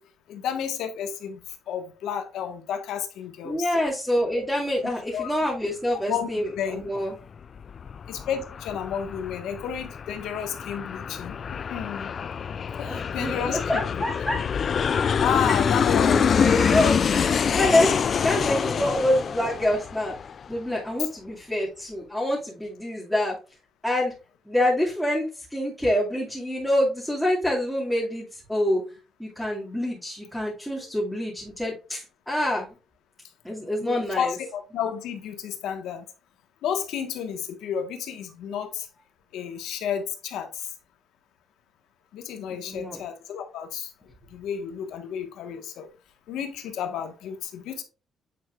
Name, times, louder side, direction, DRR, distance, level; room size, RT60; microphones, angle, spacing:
voice 1, 0.3-1.4 1.7-3.7 4.4-4.5 5.1-5.3 6.1-6.8 8.1-11.3 11.7-12.1 12.8-13.8 15.2-16.7 18.8-18.9 33.8-36.0 36.6-38.9 39.3-40.5 42.1-43.9 44.3-45.9 46.3-47.8, left 8 dB, 85° left, 1.5 m, -31 dB
voice 2, 3.4-7.2 12.8-14.4 15.5-15.6 15.9-20.1 20.5-23.4 23.8-24.1 24.5-28.8 29.2-32.7 33.4-34.3 42.5-43.0, left 1 dB, ahead, 2.4 m, -26 dB
Aircraft, 7.4-20.6, left 7 dB, 50° left, 0.3 m, -26 dB
9.2 x 4.5 x 2.5 m
cardioid pair, 90°, 0 cm